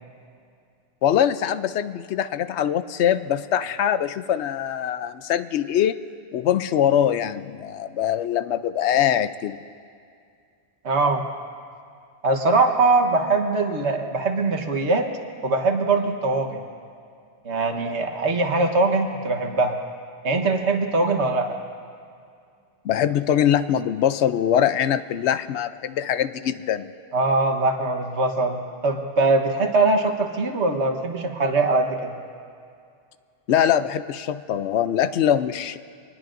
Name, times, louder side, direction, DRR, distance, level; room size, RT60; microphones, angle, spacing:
voice 1, 1.0-6.0 6.3-9.6 22.8-26.9 33.5-35.8, left 10 dB, 80° left, 13 dB, 0.9 m, -23 dB
voice 2, 10.8-11.3 12.2-15.1 15.4-16.6 17.4-19.8 20.2-21.6 27.1-32.2, right 3 dB, 85° right, 4 dB, 1.5 m, -22 dB
24.5 x 20.0 x 2.6 m, 2.3 s
omnidirectional pair, 1.1 m